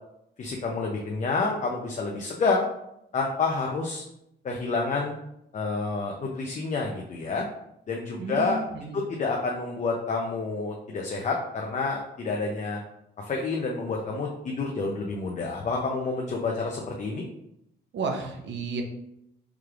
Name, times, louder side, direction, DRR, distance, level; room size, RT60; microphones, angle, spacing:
voice 1, 0.4-2.6 3.1-4.0 4.4-5.1 5.5-7.4 7.9-8.6 8.9-12.8 13.2-17.2, left 3 dB, 35° left, 0 dB, 0.5 m, -29 dB
voice 2, 8.2-9.0 17.9-18.8, right 4 dB, 65° right, 4 dB, 0.7 m, -32 dB
4.7 x 3.2 x 2.4 m, 0.80 s
cardioid pair, 90°, 20 cm